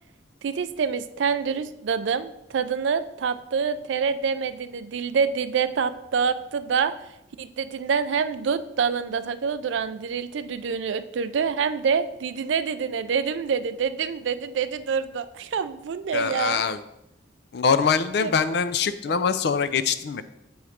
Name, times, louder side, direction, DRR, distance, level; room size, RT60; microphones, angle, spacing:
voice 1, 0.4-6.9 7.4-16.6 18.2-18.3, right 6 dB, 75° right, 13 dB, 0.4 m, -26 dB
voice 2, 16.1-16.8 17.5-20.2, left 6 dB, 60° left, 12 dB, 0.4 m, -23 dB
6.9 x 3.1 x 4.9 m, 0.85 s
head